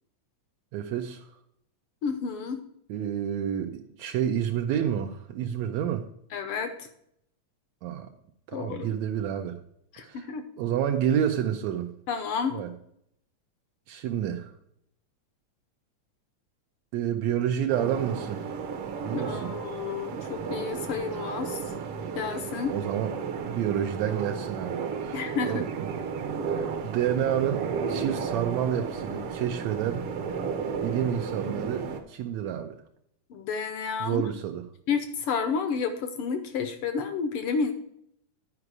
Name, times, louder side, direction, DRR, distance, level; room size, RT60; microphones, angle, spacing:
voice 1, 0.7-1.3 2.9-6.1 7.8-8.1 8.5-9.6 10.0-10.3 10.6-11.9 12.5-12.7 13.9-14.5 16.9-18.5 19.0-19.5 22.7-25.7 26.5-27.6 27.9-30.1 30.8-32.8 34.0-34.6, right 9 dB, 80° right, 5 dB, 1.8 m, -29 dB
voice 2, 2.0-2.6 6.3-6.9 8.5-8.9 9.9-10.5 12.1-12.6 19.1-21.7 22.1-22.8 25.1-25.7 33.3-34.2 34.9-37.7, left 6 dB, 70° left, 8 dB, 1.4 m, -31 dB
sound 1, 17.7-32.0, right 6 dB, 65° right, 1.6 m, -33 dB
11.0 x 5.0 x 4.7 m, 0.73 s
omnidirectional pair, 3.3 m